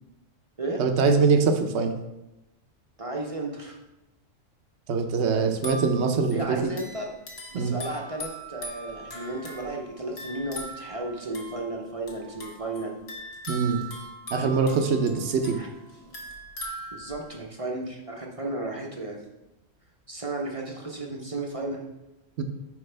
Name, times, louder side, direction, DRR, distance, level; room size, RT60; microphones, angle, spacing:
voice 1, 0.8-1.9 4.9-6.7 7.5-7.8 13.5-13.8 14.3-15.5 22.4-22.5, right 5 dB, 60° right, 6 dB, 1.0 m, -23 dB
voice 2, 3.0-3.8 6.2-7.1 7.5-12.9 15.6-15.7 16.9-19.2 20.1-21.8, right 2 dB, 30° right, 0 dB, 0.7 m, -34 dB
sound 1, 5.5-17.4, right 1 dB, 50° left, 1.4 m, -41 dB
9.5 x 4.7 x 3.3 m, 0.96 s
omnidirectional pair, 1.3 m